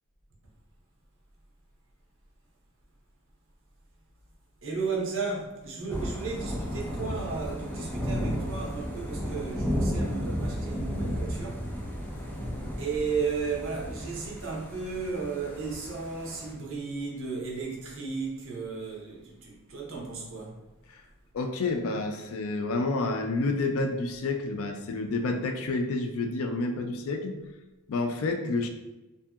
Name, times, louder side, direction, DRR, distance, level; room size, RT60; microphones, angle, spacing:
voice 1, 4.6-11.6 12.8-20.6, right 4 dB, 65° right, -3 dB, 0.8 m, -34 dB
Thunder / Rain, 5.9-16.5, equal, 10° left, 0.4 m, -33 dB
voice 2, 21.3-27.4 27.9-28.7, left 3 dB, 70° left, 5 dB, 0.4 m, -29 dB
2.7 x 2.6 x 2.3 m, 1.0 s
head